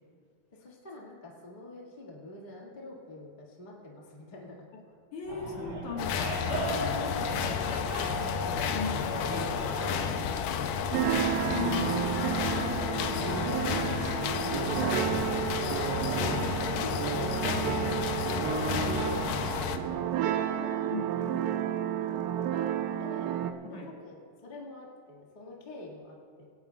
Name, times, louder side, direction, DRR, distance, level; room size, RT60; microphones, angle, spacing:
voice 1, 0.5-4.6 6.6-8.7 9.1-11.6 12.7-15.3 16.7-20.9 22.0-22.7 23.0-23.4 23.6-26.4, left 2 dB, 25° left, -4 dB, 0.9 m, -46 dB
voice 2, 5.1-6.6 8.7-9.1 11.5-12.3 15.6-15.8 20.9-21.5 23.6-23.9, left 4 dB, 60° left, -1 dB, 2.6 m, -38 dB
Animal, 5.2-10.3, right 1 dB, 30° right, 4.4 m, -38 dB
sound 1, 6.0-19.8, left 7 dB, 80° left, 2.0 m, -31 dB
sound 2, 10.9-23.5, right 10 dB, 80° right, 2.2 m, -31 dB
19.5 x 17.5 x 2.4 m, 2.3 s
omnidirectional pair, 4.5 m